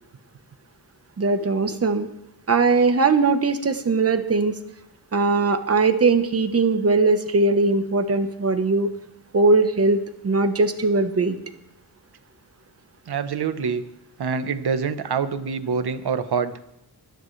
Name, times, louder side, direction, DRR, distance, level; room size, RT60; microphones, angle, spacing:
voice 1, 1.2-2.1 2.5-4.5 5.1-8.9 9.3-11.4, right 3 dB, 35° right, 8 dB, 1.1 m, -20 dB
voice 2, 13.1-13.8 14.2-16.5, right 6 dB, 70° right, 11 dB, 1.1 m, -25 dB
24.5 x 10.5 x 3.3 m, 0.82 s
wide cardioid pair, 155°, 40 cm